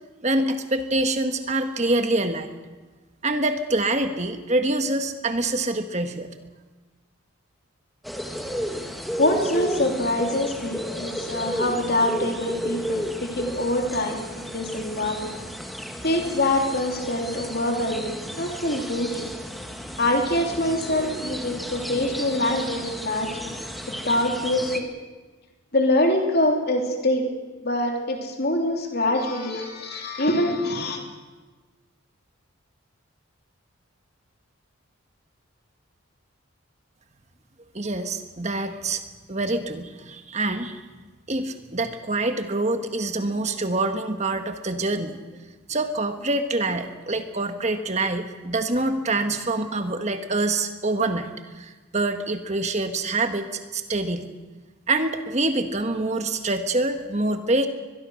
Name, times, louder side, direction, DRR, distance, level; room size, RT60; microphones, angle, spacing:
voice 1, 0.2-2.5 3.2-6.3 37.7-39.0 39.3-40.8 41.3-45.2 45.7-54.3 54.9-57.7, right 2 dB, 30° right, 7 dB, 1.6 m, -25 dB
sound 1, 8.0-24.8, equal, ahead, 1.6 m, -33 dB
voice 2, 9.2-15.3 16.0-19.3 20.0-24.9 25.7-27.3 27.6-31.0, left 1 dB, 45° left, 2 dB, 3.2 m, -25 dB
22.5 x 22.0 x 6.5 m, 1.3 s
head